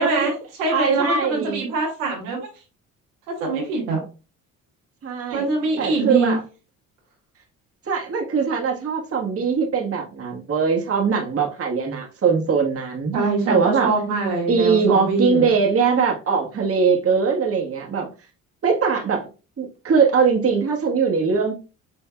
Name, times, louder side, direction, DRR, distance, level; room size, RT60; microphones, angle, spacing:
voice 1, 0.0-2.4 3.3-4.0 5.3-6.4 13.1-15.5, right 3 dB, 90° right, 0 dB, 1.6 m, -23 dB
voice 2, 0.7-1.7 5.0-5.5 5.8-6.4 7.9-13.1 13.5-13.9 14.5-18.1 18.6-19.3 19.6-21.5, right 5 dB, 40° right, 0 dB, 1.4 m, -21 dB
5.6 x 3.4 x 2.3 m, 0.33 s
hypercardioid pair, 60°, 38 cm